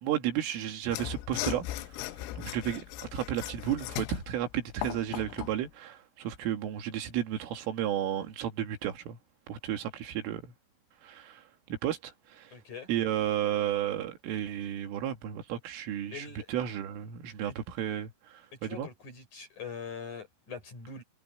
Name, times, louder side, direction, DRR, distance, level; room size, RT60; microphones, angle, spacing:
voice 1, 0.0-2.8 3.1-9.2 9.5-10.5 11.0-12.5 12.9-18.9, right 11 dB, 80° right, 4.9 m, -33 dB
Mechanisms / Sawing, 0.9-5.6, left 14 dB, 90° left, 3.6 m, -38 dB
voice 2, 12.5-12.9 16.1-16.5 17.5-17.6 18.6-21.0, left 5 dB, 35° left, 8.3 m, -43 dB
omnidirectional pair, 5.8 m